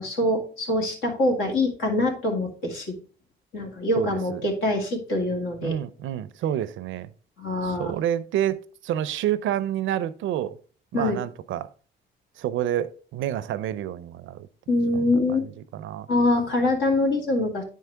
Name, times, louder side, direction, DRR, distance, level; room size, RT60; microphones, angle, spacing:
voice 1, 0.0-3.0 3.5-5.8 7.4-7.9 10.9-11.2 14.7-15.5 16.1-17.6, left 2 dB, 75° left, 2.2 m, -24 dB
voice 2, 4.0-4.4 5.6-7.1 7.6-10.6 10.9-11.7 12.4-14.5 15.3-16.1, right 11 dB, 80° right, 0.5 m, -28 dB
9.2 x 4.6 x 3.4 m
cardioid pair, 90°, 20 cm